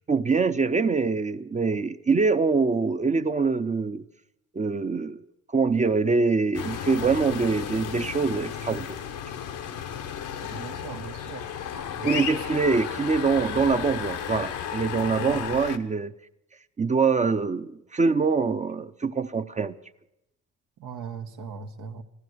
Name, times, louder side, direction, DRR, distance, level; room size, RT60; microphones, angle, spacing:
voice 1, 0.1-4.0 4.5-5.2 5.5-9.0 12.0-16.1 16.8-19.8, right 4 dB, 25° right, 9 dB, 0.6 m, -24 dB
sound 1, 6.5-15.8, left 8 dB, 90° left, 1.0 m, -33 dB
voice 2, 10.4-11.4 12.0-12.4 15.2-15.4 20.8-22.0, right 6 dB, 85° right, 5 dB, 1.2 m, -38 dB
15.0 x 12.5 x 7.9 m, 0.88 s
cardioid pair, 90°, 30 cm